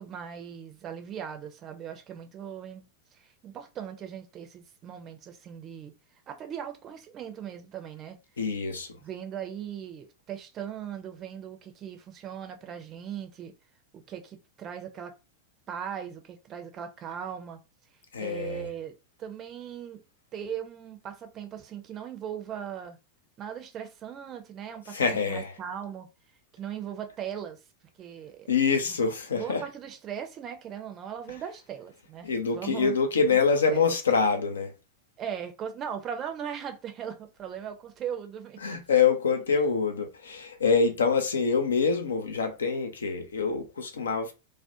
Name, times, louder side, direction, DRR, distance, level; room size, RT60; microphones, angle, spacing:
voice 1, 0.0-5.9 6.3-8.2 9.0-13.5 14.1-15.1 15.7-17.6 18.2-18.9 19.2-20.0 20.3-23.0 23.4-26.1 26.5-27.6 28.0-28.5 28.8-29.0 29.4-32.9 33.3-33.4 33.7-33.9 35.2-38.8 39.5-39.7, right 8 dB, 30° right, 0.5 m, -39 dB
voice 2, 8.4-8.9 18.1-18.7 24.9-25.5 28.5-29.6 32.2-34.7 38.6-44.3, left 5 dB, 70° left, 0.5 m, -25 dB
2.3 x 2.1 x 2.7 m
figure-of-eight pair, 90°, 0 cm